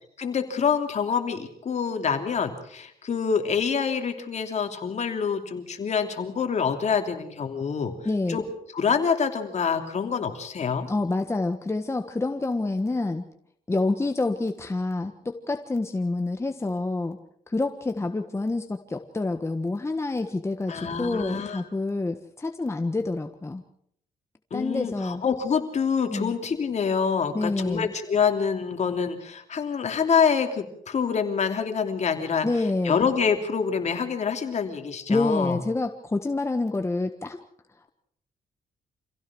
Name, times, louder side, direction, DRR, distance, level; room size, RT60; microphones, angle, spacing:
voice 1, 0.2-7.9 8.3-8.4 8.7-10.9 20.7-21.6 24.5-32.5 32.8-35.6, left 6 dB, 50° left, 6 dB, 3.1 m, -26 dB
voice 2, 8.0-8.4 10.9-13.2 13.7-17.2 17.5-23.6 24.5-25.2 26.1-26.3 27.3-27.9 32.4-33.0 35.1-37.4, left 2 dB, 20° left, 6 dB, 1.5 m, -27 dB
26.5 x 16.0 x 6.3 m, 0.68 s
cardioid pair, 95°, 15 cm